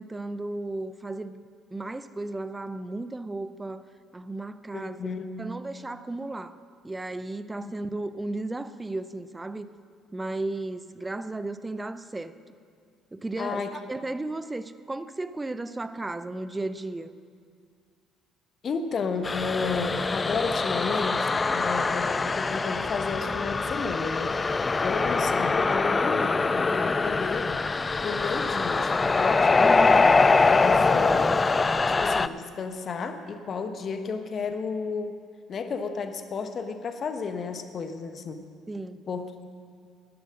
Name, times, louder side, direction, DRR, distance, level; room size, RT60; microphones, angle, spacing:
voice 1, 0.0-1.4 1.7-3.8 4.1-6.6 6.8-9.7 10.1-12.4 13.1-17.1 29.6-30.1 31.3-31.4 38.7-39.0, right 2 dB, 20° right, 14 dB, 0.6 m, -34 dB
voice 2, 4.7-5.3 7.6-7.7 13.4-13.7 18.6-24.3 24.8-27.5 28.0-30.1 30.5-31.3 32.0-35.2 35.5-38.4 39.1-39.5, left 5 dB, 45° left, 8 dB, 1.0 m, -32 dB
sound 1, 19.2-32.3, left 4 dB, 30° left, 0.4 m, -23 dB
12.0 x 10.0 x 6.4 m, 2.1 s
hypercardioid pair, 55°, 0 cm